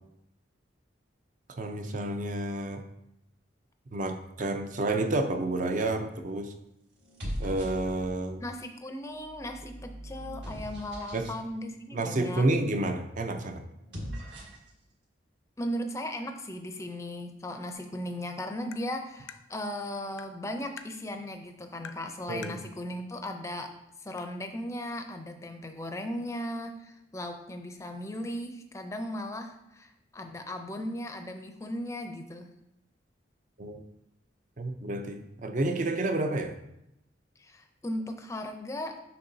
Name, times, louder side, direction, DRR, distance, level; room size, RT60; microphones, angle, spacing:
voice 1, 1.6-2.8 3.9-6.5 7.4-8.4 11.1-11.3 11.9-13.6 22.3-22.6 33.6-33.8 34.6-36.5, right 2 dB, 40° right, 6 dB, 0.5 m, -30 dB
sound 1, 7.0-8.3 9.1-11.4 13.7-14.7, equal, 60° right, 1.6 m, -40 dB
voice 2, 8.4-12.4 15.6-23.7 24.0-32.5 37.4-39.0, left 1 dB, 15° left, 6 dB, 0.5 m, -37 dB
Tap, 18.7-18.8 19.3-19.4 20.2-20.3 20.8-20.9 21.8-22.0 22.4-22.6 23.6-23.7 24.2-24.3, left 7 dB, 70° left, 0.4 m, -45 dB
6.8 x 5.5 x 2.7 m, 0.85 s
head